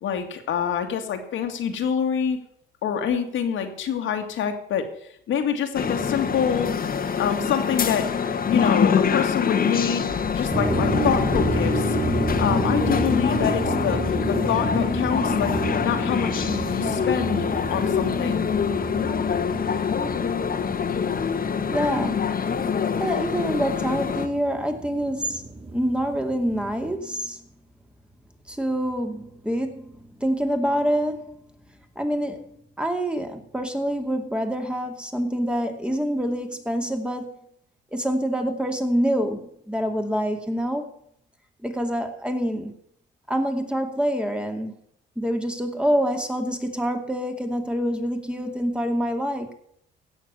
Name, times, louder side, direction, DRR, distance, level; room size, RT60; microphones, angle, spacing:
voice 1, 0.0-2.4 2.8-4.9 5.3-6.7 7.2-8.1 8.5-12.0 12.4-15.6 15.8-18.5, left 7 dB, 75° left, 5 dB, 2.3 m, -26 dB
sound 1, 5.7-24.3, left 6 dB, 45° left, 1.7 m, -25 dB
sound 2, 10.5-27.0, right 3 dB, 30° right, 1.6 m, -31 dB
voice 2, 21.3-22.3 23.0-27.4 28.5-29.9 30.2-31.4 32.0-37.3 37.9-40.9 41.6-42.7 43.3-44.7 45.2-49.5, equal, 5° right, 5 dB, 2.4 m, -26 dB
16.5 x 6.8 x 6.9 m, 0.69 s
cardioid pair, 90°, 20 cm